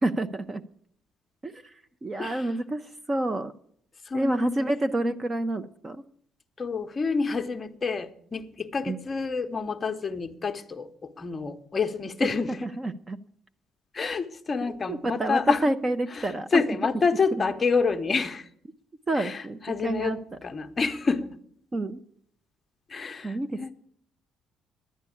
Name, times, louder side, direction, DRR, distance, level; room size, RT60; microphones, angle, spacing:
voice 1, 0.0-0.6 1.4-1.6 2.0-2.8 3.1-3.5 4.1-6.0 8.9-9.0 12.2-12.3 12.6-13.2 14.9-16.6 17.3-17.5 19.1-20.2 21.7-22.0 23.2-23.7, right 1 dB, 20° right, 11 dB, 0.4 m, -28 dB
voice 2, 4.1-4.7 6.6-12.6 13.9-15.6 16.2-18.4 19.2-21.3 22.9-23.7, left 4 dB, 20° left, 8 dB, 0.7 m, -28 dB
11.0 x 9.5 x 8.3 m, 0.67 s
cardioid pair, 160°, 0 cm